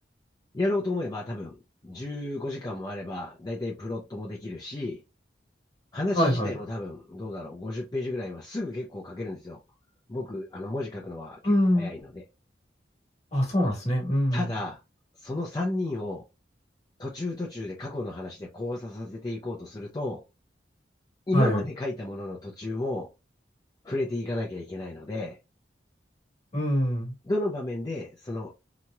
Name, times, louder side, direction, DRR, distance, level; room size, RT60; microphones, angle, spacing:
voice 1, 0.5-5.0 5.9-9.6 10.1-11.4 11.7-12.2 14.3-14.8 15.2-16.2 17.0-20.2 21.3-23.1 23.8-25.4 27.2-28.5, left 2 dB, 20° left, 0.5 m, -32 dB
voice 2, 6.1-6.5 11.4-11.9 13.3-14.5 21.3-21.6 26.5-27.1, equal, 40° left, 1.3 m, -24 dB
2.9 x 2.8 x 2.2 m
head